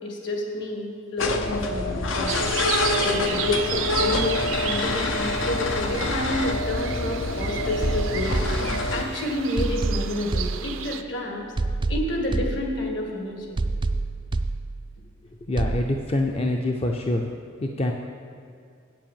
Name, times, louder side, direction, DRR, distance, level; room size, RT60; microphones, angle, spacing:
voice 1, 0.0-2.4 3.0-8.3 8.9-11.4 11.9-13.5, left 1 dB, 65° left, 1 dB, 1.9 m, -29 dB
sound 1, 1.2-9.0, left 2 dB, 80° left, 0.8 m, -26 dB
sound 2, 2.3-11.0, right 10 dB, 80° right, 0.5 m, -33 dB
sound 3, 7.8-9.1 9.6-11.1 11.6-13.1 13.6-15.1 15.6-15.8, right 2 dB, 25° right, 0.3 m, -28 dB
voice 2, 15.4-17.3 17.6-17.9, left 1 dB, 30° left, 2 dB, 0.5 m, -25 dB
8.5 x 7.5 x 7.3 m, 2.2 s
head